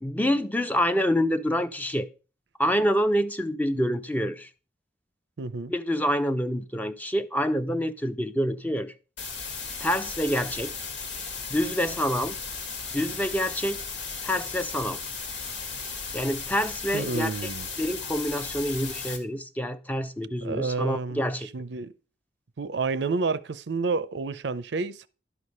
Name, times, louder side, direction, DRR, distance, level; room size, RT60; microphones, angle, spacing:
voice 1, 0.0-2.1 2.6-4.5 5.7-8.9 9.8-10.7 11.5-12.4 12.9-13.8 14.2-15.0 16.1-17.5 17.8-21.5, equal, 10° left, 0.6 m, -27 dB
voice 2, 5.4-5.7 16.9-17.7 20.4-21.3 21.5-21.9 22.6-25.1, right 4 dB, 65° right, 0.5 m, -29 dB
sound 1, 9.2-19.2, left 4 dB, 85° left, 1.9 m, -36 dB
11.5 x 4.9 x 5.5 m
head